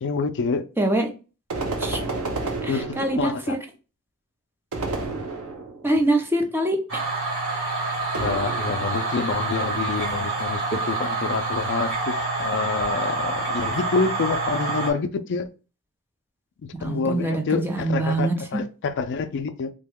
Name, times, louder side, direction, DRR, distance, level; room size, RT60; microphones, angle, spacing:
voice 1, 0.0-0.6 2.7-3.6 8.1-15.5 16.8-19.7, left 4 dB, 55° left, 0.4 m, -27 dB
voice 2, 0.8-1.1 1.8-2.0 2.6-3.6 5.8-6.8 16.8-18.6, right 1 dB, 10° right, 0.6 m, -24 dB
sound 1, 1.5-3.5 4.7-5.9 8.1-9.1, right 3 dB, 80° right, 0.8 m, -30 dB
sound 2, 6.9-14.9, right 3 dB, 65° right, 1.4 m, -27 dB
3.4 x 2.2 x 3.5 m
head